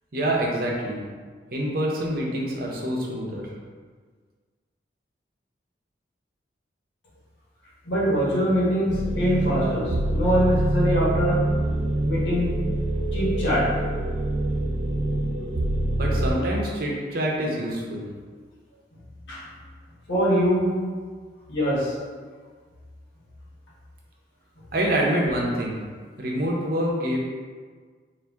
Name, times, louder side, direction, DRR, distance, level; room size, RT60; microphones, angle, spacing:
voice 1, 0.1-1.0 1.5-3.5 16.0-18.1 24.7-25.9 26.2-27.2, right 1 dB, 55° right, -2 dB, 0.7 m, -26 dB
voice 2, 7.8-11.6 12.0-12.5 13.1-13.8 19.3-19.5 20.1-20.8 21.5-22.0, equal, 85° left, -7 dB, 1.3 m, -23 dB
sound 1, 8.9-16.3, right 1 dB, 85° right, 0.7 m, -25 dB
4.1 x 2.6 x 3.6 m, 1.6 s
head